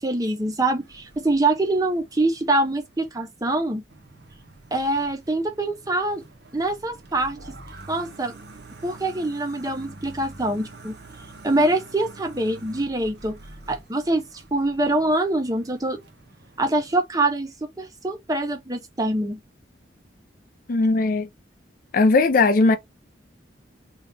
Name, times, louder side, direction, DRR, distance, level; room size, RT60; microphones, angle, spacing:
voice 1, 0.0-3.8 4.7-6.2 6.5-7.5 7.9-8.3 8.8-11.0 11.4-13.4 13.7-16.0 16.6-19.4, right 2 dB, 20° right, 0.6 m, -24 dB
sound 1, 0.8-3.1 3.9-17.0, right 2 dB, 60° right, 0.7 m, -46 dB
voice 2, 20.7-21.3 21.9-22.8, left 3 dB, 50° left, 0.5 m, -18 dB
2.8 x 2.3 x 3.3 m
head